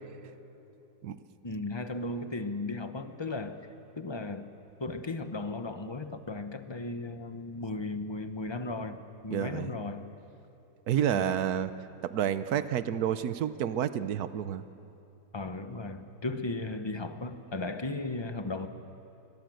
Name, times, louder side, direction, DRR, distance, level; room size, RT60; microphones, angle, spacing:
voice 1, 1.4-3.6 4.0-4.5 4.8-10.0 11.1-11.4 15.3-18.7, left 2 dB, 20° left, 8 dB, 1.0 m, -36 dB
voice 2, 9.3-9.7 10.9-11.7 12.0-14.6, right 9 dB, 70° right, 12 dB, 1.4 m, -29 dB
29.5 x 22.0 x 7.9 m, 2.9 s
omnidirectional pair, 1.7 m